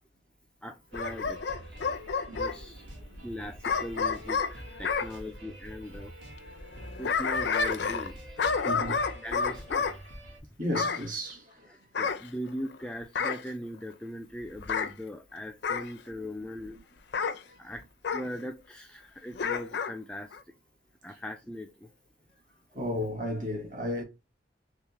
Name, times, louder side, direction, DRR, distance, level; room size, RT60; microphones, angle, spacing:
voice 1, 0.6-1.4 2.3-2.8 3.2-6.1 7.0-8.1 8.9-9.9 11.7-16.8 17.6-17.8 18.1-20.3 21.0-21.7, equal, 5° left, 0.3 m, -40 dB
Bark / Growling, 0.9-2.6 3.6-5.1 6.7-8.1 8.4-10.0 10.7-11.1 11.9-12.7 13.1-13.5 14.6-14.9 15.6-15.9 17.1-17.4 18.0-18.3 19.4-19.9 20.3-20.4, left 5 dB, 65° left, 0.5 m, -29 dB
sound 1, 0.9-10.4, equal, 75° right, 1.5 m, -46 dB
voice 2, 2.3-2.7 8.6-9.0 9.3-9.4 10.6-11.4 22.7-24.0, equal, 45° right, 1.5 m, -33 dB
3.5 x 3.2 x 3.0 m
head